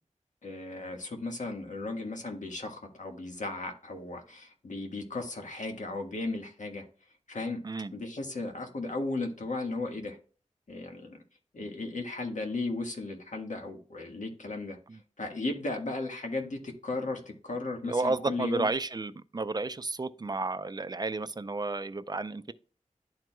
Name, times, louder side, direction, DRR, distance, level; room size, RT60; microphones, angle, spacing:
voice 1, 0.4-6.8 7.3-7.6 7.9-10.2 10.7-11.2 11.5-14.8 15.2-18.7, left 2 dB, 70° left, 1.5 m, -35 dB
voice 2, 17.8-22.5, right 3 dB, 30° right, 0.4 m, -32 dB
11.5 x 4.6 x 2.2 m
wide cardioid pair, 85°, 13 cm